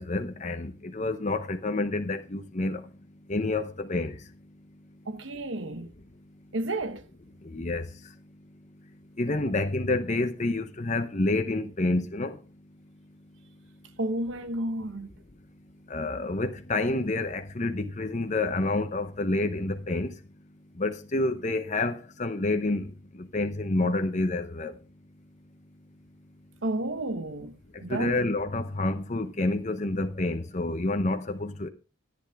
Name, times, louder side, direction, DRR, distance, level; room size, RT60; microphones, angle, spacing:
voice 1, 0.0-2.8 3.3-4.1 7.5-7.9 9.2-12.3 15.9-20.1 20.8-22.9 23.3-24.7 27.9-31.7, left 2 dB, 35° left, 0.8 m, -28 dB
voice 2, 5.1-5.9 6.5-7.0 14.0-15.1 26.6-27.6 27.8-28.2, right 1 dB, 70° right, 1.0 m, -31 dB
14.0 x 9.8 x 3.5 m
head